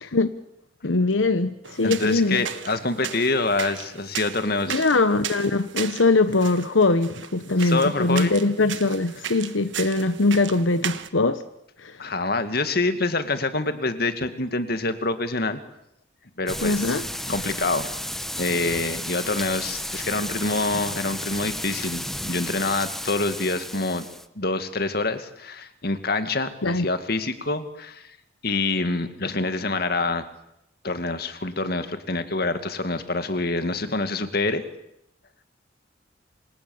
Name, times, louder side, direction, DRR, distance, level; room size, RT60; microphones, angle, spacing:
voice 1, 0.8-2.4 4.7-11.4 11.8-12.1 16.6-17.1 26.6-26.8, left 3 dB, 80° left, 11 dB, 1.1 m, -22 dB
sound 1, 1.6-11.1, right 9 dB, 75° right, 1.4 m, -36 dB
voice 2, 1.8-4.8 7.6-8.3 12.0-15.6 16.4-17.0 17.3-17.9 18.4-24.0 24.4-28.1 28.4-30.2 30.8-34.6, left 3 dB, 55° left, 9 dB, 2.1 m, -26 dB
sound 2, 16.5-24.3, left 1 dB, ahead, 1.0 m, -33 dB
28.0 x 26.0 x 7.2 m, 0.82 s
head